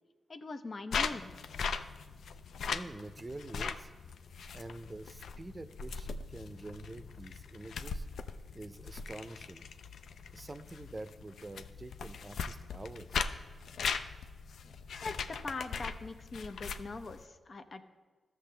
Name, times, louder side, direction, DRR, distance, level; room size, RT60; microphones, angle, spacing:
voice 1, 0.3-1.3 15.0-17.8, left 3 dB, 55° left, 7 dB, 0.7 m, -42 dB
sound 1, 0.9-17.2, left 5 dB, 80° left, 0.4 m, -40 dB
voice 2, 2.7-3.9 4.5-8.1 8.5-9.7 10.3-13.3, right 2 dB, 30° right, 10 dB, 0.5 m, -46 dB
13.5 x 6.3 x 3.3 m, 1.4 s
supercardioid pair, 45°, 0 cm